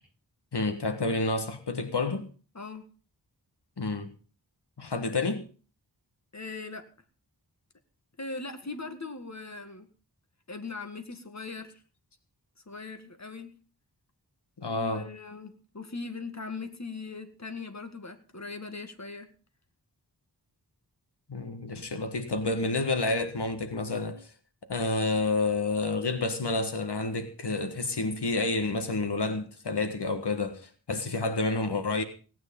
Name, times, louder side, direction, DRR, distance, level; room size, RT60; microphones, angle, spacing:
voice 1, 0.5-2.3 3.8-4.1 4.8-5.5 14.6-15.1 21.3-24.3 24.7-32.0, left 3 dB, 80° left, 1.6 m, -29 dB
voice 2, 6.3-6.9 8.2-9.9 10.5-11.8 12.7-13.6 14.7-19.3, left 4 dB, 40° left, 1.9 m, -40 dB
17.5 x 9.5 x 5.4 m
wide cardioid pair, 60°, 40 cm